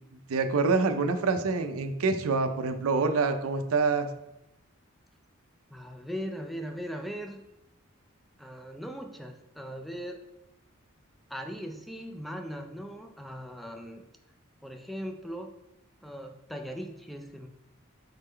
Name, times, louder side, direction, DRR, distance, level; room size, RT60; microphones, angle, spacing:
voice 1, 0.3-4.1, right 4 dB, 80° right, 8 dB, 0.5 m, -26 dB
voice 2, 5.7-7.4 8.4-10.2 11.3-14.0 14.6-15.5 16.0-17.5, equal, ahead, 4 dB, 0.3 m, -39 dB
3.9 x 3.6 x 3.3 m, 0.89 s
head